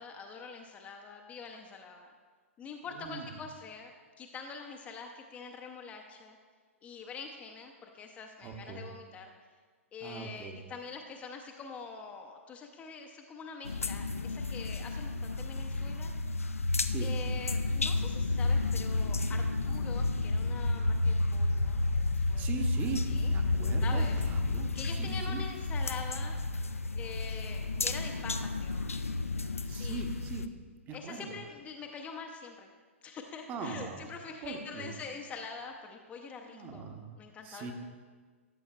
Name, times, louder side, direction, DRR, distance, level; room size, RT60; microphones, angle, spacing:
voice 1, 0.0-2.1 2.6-3.9 4.2-6.4 6.8-9.3 9.9-16.1 17.0-22.5 23.1-23.3 23.8-24.2 24.5-26.4 26.9-28.9 29.6-30.0 30.9-32.7 33.0-36.9 37.2-37.7, left 5 dB, 20° left, 3 dB, 0.5 m, -45 dB
voice 2, 8.4-8.9 10.0-10.6 16.8-17.1 22.4-25.4 29.7-30.5 30.9-31.3 33.5-34.1 34.4-34.9 36.5-37.1 37.4-37.7, right 4 dB, 25° right, 4 dB, 0.8 m, -40 dB
sound 1, 13.6-30.5, left 2 dB, 80° left, 0.4 m, -31 dB
13.0 x 7.0 x 2.3 m, 1.5 s
figure-of-eight pair, 110°, 7 cm